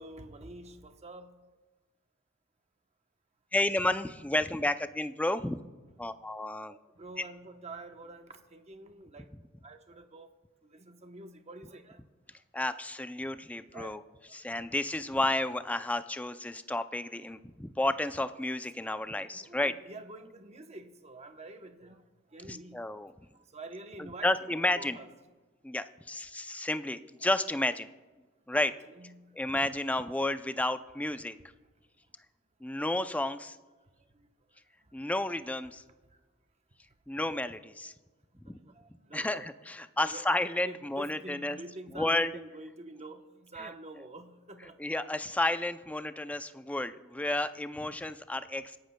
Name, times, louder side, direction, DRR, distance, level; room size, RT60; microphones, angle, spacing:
voice 1, 0.0-1.3 6.7-9.3 9.6-10.3 10.7-12.0 13.7-13.9 14.3-14.4 18.8-22.0 22.3-22.8 23.5-25.1 28.5-29.2 38.6-39.4 40.0-44.8, right 2 dB, 30° right, 6 dB, 0.9 m, -47 dB
voice 2, 3.5-5.6 6.0-6.8 12.5-14.0 14.3-19.7 22.5-23.1 24.0-25.0 25.6-27.9 28.5-28.7 29.3-31.4 32.6-33.6 34.9-35.8 37.1-37.9 38.5-38.6 39.1-41.6 41.9-42.3 43.6-43.7 44.8-48.8, left 1 dB, 5° left, 10 dB, 0.4 m, -31 dB
26.0 x 11.5 x 2.2 m, 1.3 s
head